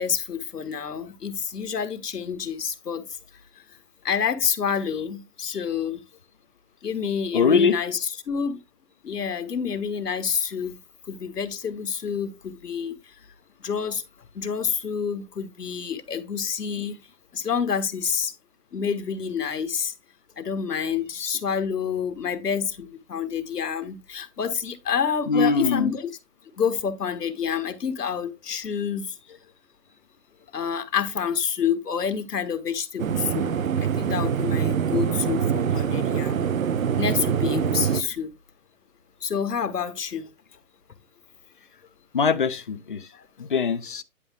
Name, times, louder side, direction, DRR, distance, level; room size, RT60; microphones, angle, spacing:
voice 1, 0.0-3.0 4.0-6.0 6.8-8.6 9.0-10.8 11.1-13.0 13.6-14.0 14.3-17.0 17.3-18.3 18.7-19.9 20.4-26.1 26.6-29.1 30.5-33.5 33.8-36.4 37.0-38.3 39.2-40.3, left 7 dB, 80° left, 1.5 m, -28 dB
voice 2, 7.3-7.8 25.3-25.9 42.1-43.0 43.4-44.0, left 5 dB, 35° left, 0.5 m, -22 dB
sound 1, 33.0-38.0, right 8 dB, 60° right, 0.8 m, -24 dB
9.8 x 5.3 x 3.5 m
hypercardioid pair, 160°, 46 cm